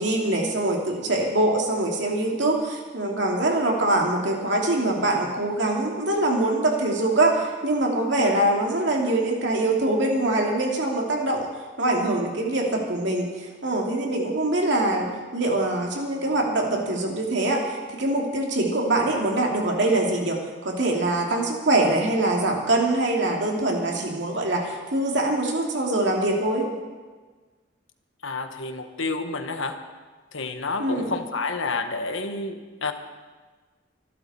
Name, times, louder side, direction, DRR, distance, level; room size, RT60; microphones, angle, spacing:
voice 1, 0.0-11.5 11.8-26.7 30.8-31.2, right 2 dB, 65° right, 0 dB, 2.8 m, -24 dB
voice 2, 28.2-29.8 30.3-32.9, left 3 dB, 85° left, 7 dB, 1.4 m, -29 dB
25.0 x 12.0 x 4.4 m, 1.4 s
head